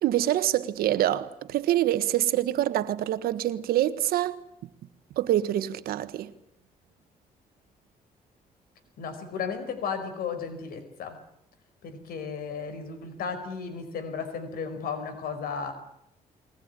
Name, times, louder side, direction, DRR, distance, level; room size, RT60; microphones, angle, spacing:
voice 1, 0.0-4.4 5.2-6.3, right 13 dB, 90° right, 1.5 m, -25 dB
voice 2, 9.0-11.2 11.8-15.7, left 6 dB, 80° left, 5.3 m, -34 dB
22.5 x 20.5 x 9.8 m
cardioid pair, 90°, 15 cm